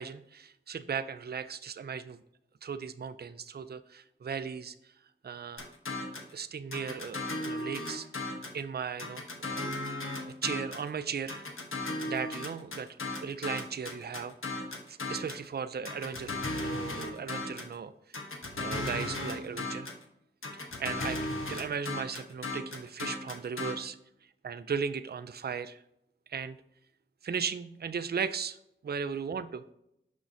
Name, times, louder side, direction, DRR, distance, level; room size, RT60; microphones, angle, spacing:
voice 1, 0.0-2.2 2.6-4.8 5.2-5.7 6.3-8.3 8.5-9.9 10.2-11.4 12.1-12.9 13.2-14.3 14.9-18.2 18.6-19.9 20.5-21.2 21.5-24.0 24.4-25.8 26.3-26.6 27.2-28.6 28.8-29.6, right 6 dB, 50° right, 12 dB, 0.4 m, -37 dB
sound 1, 5.6-6.3 6.7-8.6 9.0-10.9 11.3-15.5 15.9-17.8 18.1-20.0 20.4-23.7, left 2 dB, 85° left, 1.0 m, -36 dB
6.3 x 5.8 x 2.7 m, 0.79 s
wide cardioid pair, 65°, 21 cm